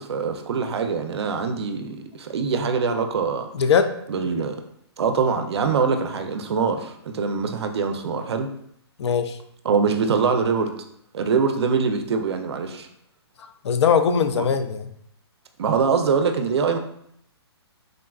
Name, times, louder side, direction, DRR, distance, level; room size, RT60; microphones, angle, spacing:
voice 1, 0.0-3.5 4.1-4.6 5.0-8.5 9.6-10.7 11.1-12.9 14.4-14.5 15.6-16.8, right 5 dB, 70° right, 6 dB, 0.4 m, -23 dB
voice 2, 3.5-3.9 9.0-9.4 13.6-14.9, left 6 dB, 75° left, 9 dB, 0.4 m, -20 dB
3.7 x 2.3 x 2.3 m, 0.71 s
hypercardioid pair, 165°, 14 cm